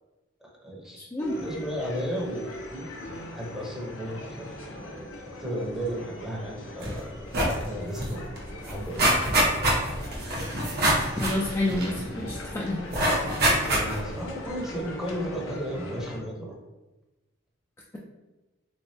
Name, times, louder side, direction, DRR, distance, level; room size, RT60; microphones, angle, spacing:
voice 1, 0.4-2.9 3.3-4.5 5.3-7.1 7.6-8.3 8.7-9.3 13.6-16.6, equal, 5° right, -3 dB, 0.7 m, -34 dB
sound 1, 1.2-16.2, left 1 dB, 75° left, 0.7 m, -40 dB
sound 2, 6.8-7.0 7.3-7.6 8.0-8.1 8.4-12.3 12.9-14.1 14.6-14.7, right 1 dB, 55° right, 0.8 m, -25 dB
voice 2, 11.2-12.8, left 1 dB, 15° left, -3 dB, 0.3 m, -28 dB
3.4 x 3.2 x 2.7 m, 1.1 s
head